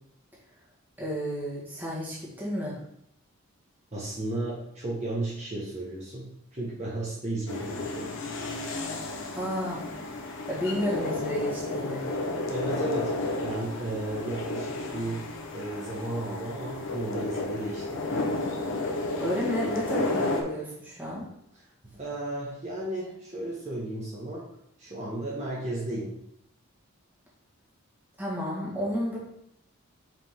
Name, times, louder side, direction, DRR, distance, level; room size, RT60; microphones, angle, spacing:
voice 1, 1.0-2.8 9.3-9.8 10.5-12.1 19.2-21.2 28.2-29.2, equal, 10° right, -6 dB, 1.7 m, -31 dB
voice 2, 3.9-8.2 12.5-18.0 21.9-24.5 24.8-26.2, right 2 dB, 30° right, -6 dB, 1.3 m, -34 dB
sound 1, 7.5-20.4, left 2 dB, 60° left, 1.0 m, -32 dB
5.9 x 5.0 x 3.6 m, 0.76 s
head